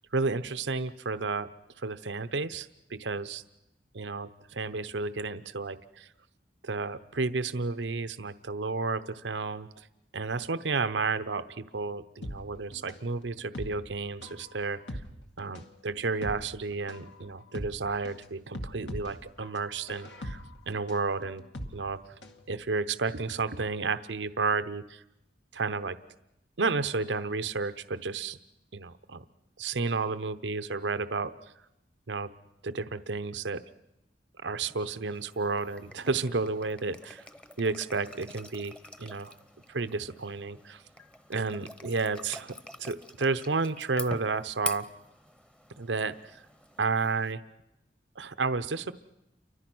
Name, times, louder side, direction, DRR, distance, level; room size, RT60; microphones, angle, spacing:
voice 1, 0.1-1.5 1.8-3.4 3.9-6.1 6.6-9.9 10.1-15.0 15.4-21.4 21.7-22.0 22.5-25.0 25.5-26.0 26.6-28.4 28.7-29.2 29.6-31.3 32.1-32.3 32.6-33.6 34.4-37.3 37.6-39.3 39.7-40.8 41.3-44.9 45.8-46.4 46.8-47.4 48.2-48.9, right 4 dB, 90° right, 11 dB, 0.9 m, -32 dB
sound 1, 12.2-22.4 22.7-22.8, equal, 80° left, 2.0 m, -42 dB
sound 2, 34.7-47.3, equal, 5° left, 0.9 m, -45 dB
29.5 x 24.5 x 6.2 m, 0.89 s
head